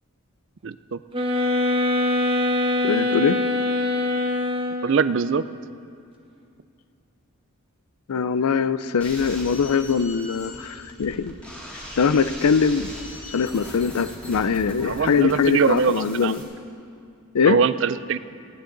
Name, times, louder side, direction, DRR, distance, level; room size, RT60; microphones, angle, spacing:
voice 1, 0.6-1.0 4.8-5.4 14.8-16.3 17.5-18.2, right 5 dB, 55° right, 15 dB, 0.4 m, -22 dB
sound 1, 1.1-5.0, left 1 dB, 25° right, 1.1 m, -23 dB
voice 2, 2.8-3.4 8.1-11.3 12.0-13.0 13.3-16.4 17.3-17.6, left 6 dB, 90° left, 14 dB, 0.5 m, -22 dB
sound 2, 9.0-16.4, left 1 dB, 5° left, 2.2 m, -39 dB
19.0 x 16.0 x 3.9 m, 2.5 s
head